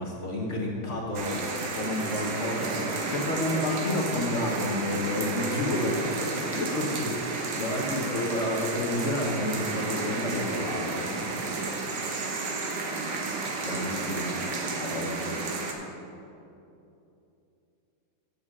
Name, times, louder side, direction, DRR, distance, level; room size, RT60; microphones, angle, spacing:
voice 1, 0.0-12.2 12.7-12.8 13.3-14.3 14.8-15.3, left 1 dB, 45° left, -2 dB, 1.2 m, -31 dB
sound 1, 1.1-15.7, right 3 dB, 60° right, 1.5 m, -32 dB
8.4 x 7.1 x 6.1 m, 2.8 s
omnidirectional pair, 2.3 m